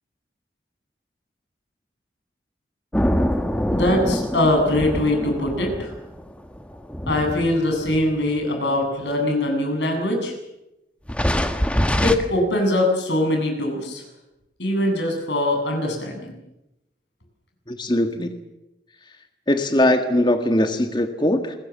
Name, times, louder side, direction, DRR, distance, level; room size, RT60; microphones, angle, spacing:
sound 1, 2.9-8.4 9.1-9.2 11.1-12.2, equal, 5° left, 1.5 m, -24 dB
voice 1, 3.7-5.9 7.1-10.3 12.0-14.0 14.6-16.3, left 1 dB, 85° left, 3 dB, 7.8 m, -22 dB
voice 2, 17.7-18.3 19.5-21.5, left 1 dB, 25° left, 7 dB, 1.6 m, -20 dB
28.5 x 21.5 x 7.4 m, 0.92 s
head